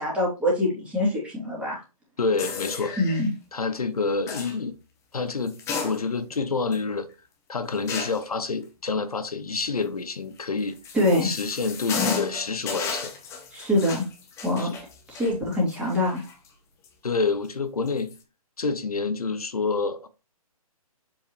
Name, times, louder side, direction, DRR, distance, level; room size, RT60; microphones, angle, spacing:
voice 1, 0.0-1.8 3.0-3.3 10.9-11.3 13.5-14.0 14.4-14.7 15.1-16.2, left 1 dB, 5° right, 2.6 m, -24 dB
voice 2, 2.2-3.0 3.5-4.7 5.1-7.1 7.5-10.8 11.2-13.1 14.6-14.8 17.0-18.1 18.6-20.1, left 4 dB, 75° left, 0.8 m, -28 dB
sound 1, 2.4-3.3 4.3-4.6 5.5-6.3 6.7-6.8 7.9-8.3 10.4-16.5 16.8-16.9 17.9-18.2, left 5 dB, 15° left, 0.9 m, -34 dB
7.3 x 4.7 x 3.1 m
figure-of-eight pair, 135°, 19 cm